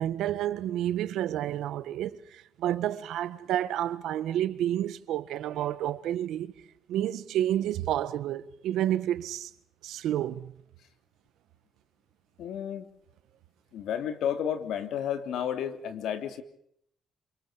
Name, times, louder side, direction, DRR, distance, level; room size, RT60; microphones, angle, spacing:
voice 1, 0.0-6.5 6.9-9.5 9.8-10.5, right 12 dB, 85° right, 1.5 m, -30 dB
voice 2, 12.4-12.9 13.7-16.4, left 9 dB, 80° left, 3.0 m, -32 dB
28.0 x 25.0 x 5.2 m
cardioid pair, 90°, 0 cm